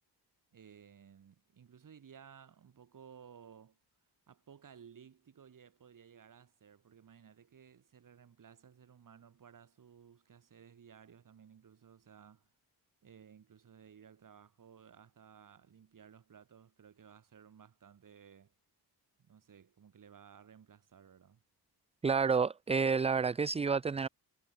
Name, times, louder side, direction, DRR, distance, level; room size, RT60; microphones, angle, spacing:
voice 1, 0.5-3.8 4.3-12.5 13.0-18.5 19.2-21.4, right 7 dB, 50° right, 6.2 m, -58 dB
voice 2, 22.0-24.1, right 5 dB, 15° right, 0.3 m, -29 dB
wide cardioid pair, 170°, 40 cm